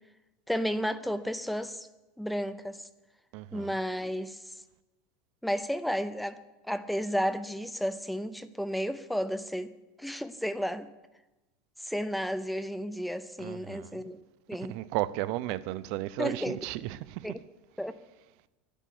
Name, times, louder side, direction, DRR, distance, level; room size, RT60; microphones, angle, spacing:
voice 1, 0.5-1.9 2.2-2.9 3.5-4.5 5.4-9.7 10.0-10.9 11.8-14.2 14.5-14.8 16.2-16.6 17.2-17.4 17.8-18.0, equal, ahead, 0.6 m, -32 dB
voice 2, 3.3-3.7 13.4-14.0 14.7-17.3, right 16 dB, 55° right, 0.5 m, -34 dB
11.5 x 10.0 x 8.4 m
supercardioid pair, 150°, 0 cm